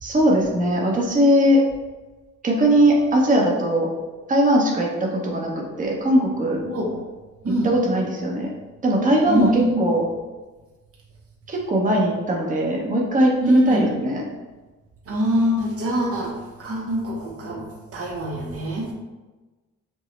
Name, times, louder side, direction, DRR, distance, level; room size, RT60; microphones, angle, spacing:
voice 1, 0.0-1.6 2.4-3.9 4.3-6.6 7.6-8.5 8.8-10.0 11.5-14.2, right 1 dB, 25° right, -1 dB, 0.9 m, -19 dB
voice 2, 6.6-7.0 7.4-7.7 9.3-9.9 13.4-13.9 15.1-18.9, equal, 50° right, -1 dB, 0.8 m, -24 dB
5.2 x 2.0 x 3.2 m, 1.2 s
cardioid pair, 90°, 30 cm